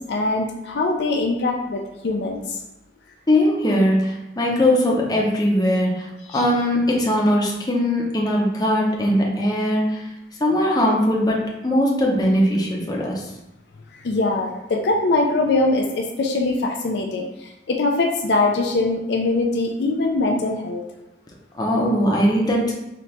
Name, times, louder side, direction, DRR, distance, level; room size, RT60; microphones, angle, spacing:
voice 1, 0.0-2.4 6.3-6.5 14.0-20.8, left 2 dB, 65° left, 1 dB, 0.4 m, -22 dB
voice 2, 3.3-6.1 6.3-10.0 10.4-13.2 21.5-22.7, left 1 dB, 20° left, -2 dB, 0.6 m, -20 dB
4.1 x 2.8 x 3.2 m, 0.93 s
head